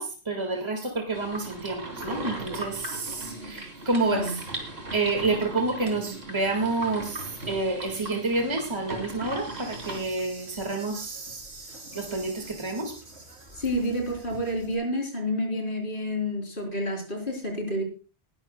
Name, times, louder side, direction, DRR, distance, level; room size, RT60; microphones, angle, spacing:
voice 1, 0.0-4.4 4.9-11.4 11.9-12.9, right 3 dB, 25° right, 3 dB, 2.1 m, -29 dB
sound 1, 1.1-10.0, right 2 dB, 65° right, 3.3 m, -38 dB
voice 2, 4.0-4.3 13.6-17.8, equal, 50° left, 1 dB, 4.0 m, -29 dB
Insect, 9.2-14.7, right 2 dB, 85° right, 4.2 m, -46 dB
19.5 x 12.5 x 2.3 m, 0.34 s
omnidirectional pair, 1.1 m